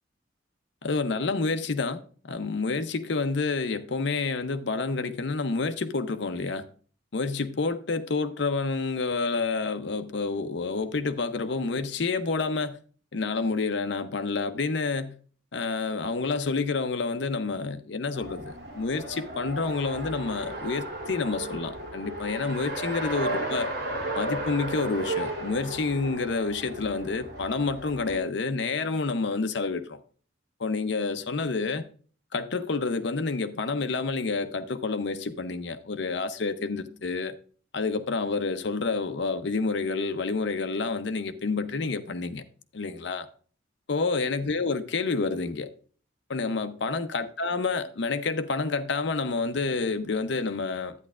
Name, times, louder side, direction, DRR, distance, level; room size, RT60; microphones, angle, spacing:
voice 1, 0.8-6.6 7.1-12.8 13.1-15.1 15.5-23.7 24.2-30.0 30.6-31.9 32.3-37.3 37.7-42.4 42.7-43.3 43.9-45.7 46.3-50.9, left 4 dB, 60° left, 0.6 m, -29 dB
Race car auto racing, 18.1-28.2, right 1 dB, 55° right, 1.8 m, -34 dB
11.0 x 9.1 x 2.4 m
head